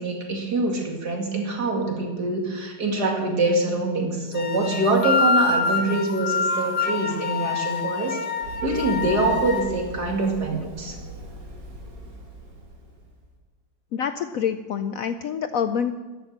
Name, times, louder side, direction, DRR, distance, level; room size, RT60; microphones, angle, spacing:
voice 1, 0.0-8.2 8.6-11.0, right 2 dB, 60° right, 1 dB, 2.9 m, -24 dB
sound 1, 4.3-9.6, left 4 dB, 40° left, 1.0 m, -25 dB
Run, 8.4-13.2, right 1 dB, 75° right, 2.9 m, -39 dB
voice 2, 13.9-16.0, left 7 dB, 70° left, 10 dB, 0.8 m, -26 dB
13.0 x 10.5 x 7.4 m, 1.2 s
omnidirectional pair, 1.9 m